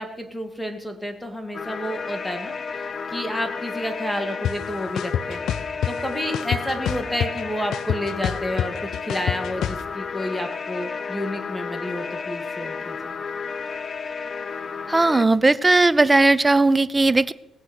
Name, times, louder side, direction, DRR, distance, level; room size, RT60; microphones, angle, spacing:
voice 1, 0.0-5.4 5.8-13.1, equal, 5° left, 5 dB, 2.2 m, -30 dB
sound 1, 1.5-15.3, left 5 dB, 40° left, 0.8 m, -32 dB
sound 2, 4.4-4.5 5.0-5.9 6.3-7.4 7.7-9.8, left 10 dB, 75° left, 0.5 m, -25 dB
voice 2, 14.9-17.3, right 2 dB, 20° right, 18 dB, 0.5 m, -17 dB
18.0 x 6.4 x 8.1 m, 0.87 s
cardioid pair, 90°, 0 cm